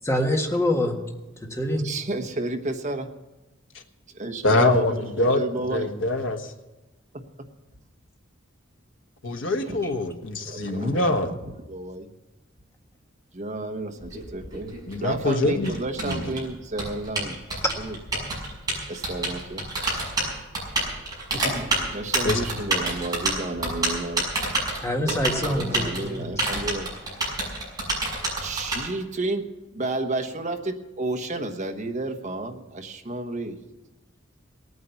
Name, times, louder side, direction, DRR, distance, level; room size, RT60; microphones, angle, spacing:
voice 1, 0.0-1.0 1.4-1.9 24.8-26.3, left 1 dB, 15° left, 1 dB, 1.7 m, -25 dB
voice 2, 1.8-3.1 4.1-5.9 7.1-7.2 9.7-9.8 10.5-11.3 11.7-12.1 13.3-14.7 15.0-17.4 17.8-18.0 18.9-19.7 21.3-24.2 25.4-26.9 28.4-29.4 29.7-33.6, right 2 dB, 40° right, 5 dB, 1.2 m, -31 dB
voice 3, 4.4-5.4 5.7-6.5 9.2-11.3 14.9-15.7 16.0-16.3 22.2-22.4, left 2 dB, 70° left, 4 dB, 1.4 m, -24 dB
Typing, 14.0-28.8, right 2 dB, 20° right, 6.1 m, -28 dB
17.5 x 9.5 x 7.1 m, 1.0 s
head